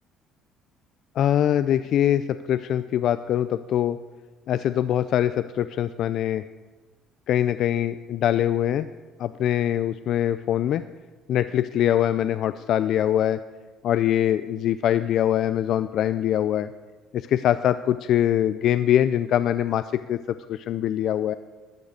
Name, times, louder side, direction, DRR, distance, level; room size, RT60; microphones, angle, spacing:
voice 1, 1.2-4.0 4.5-6.4 7.3-8.9 9.2-10.8 11.3-13.4 13.8-16.7 17.1-20.2 20.5-21.3, left 11 dB, 65° left, 12 dB, 0.4 m, -23 dB
12.0 x 6.5 x 8.5 m, 1.3 s
cardioid pair, 95°, 0 cm